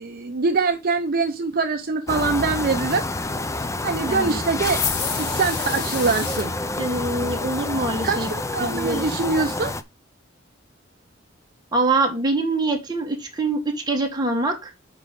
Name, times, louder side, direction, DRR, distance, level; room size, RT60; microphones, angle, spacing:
voice 1, 0.0-3.0 3.8-4.8 5.1-6.5 8.0-9.7, right 4 dB, 50° right, 0.7 m, -23 dB
sound 1, 2.1-9.8, left 2 dB, 15° left, 0.5 m, -28 dB
voice 2, 4.1-4.4 6.8-8.3 8.6-9.1 11.7-14.7, right 2 dB, 20° right, 1.7 m, -24 dB
sound 2, 4.6-6.5, left 6 dB, 60° left, 1.7 m, -29 dB
6.5 x 5.0 x 5.3 m
head